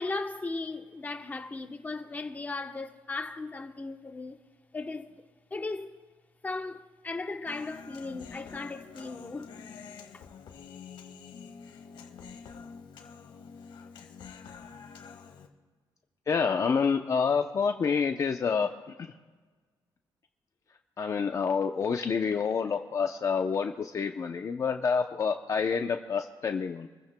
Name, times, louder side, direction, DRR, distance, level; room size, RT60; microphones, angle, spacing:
voice 1, 0.0-4.4 4.7-5.2 5.5-6.0 6.4-9.7 10.1-10.2, left 3 dB, 20° left, 0.9 m, -37 dB
Human voice, 7.5-15.5, left 6 dB, 85° left, 1.6 m, -47 dB
voice 2, 16.3-19.1 21.0-26.9, left 5 dB, 40° left, 0.6 m, -28 dB
27.5 x 15.0 x 2.2 m
cardioid pair, 135°, 8 cm